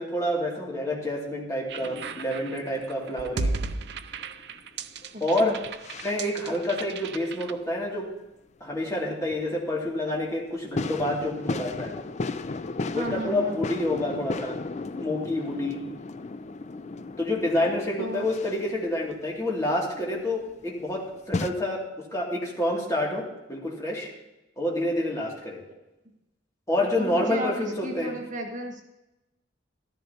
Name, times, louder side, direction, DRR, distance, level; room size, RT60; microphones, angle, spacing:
voice 1, 0.0-3.5 5.2-5.5 6.0-8.1 8.6-11.9 12.9-14.6 15.0-15.8 17.2-21.8 22.1-24.1 24.6-25.6 26.7-28.1, left 1 dB, 15° left, -3 dB, 2.6 m, -28 dB
sound 1, 1.7-7.5, right 3 dB, 65° right, 0.6 m, -35 dB
sound 2, 1.8-5.3 5.6-6.4 9.3-9.4 10.8-21.5, left 3 dB, 40° left, 0.5 m, -36 dB
voice 2, 5.1-5.6 12.9-13.6 18.0-18.3 27.0-28.8, equal, 45° right, 1 dB, 1.7 m, -34 dB
13.5 x 13.5 x 2.9 m, 0.96 s
head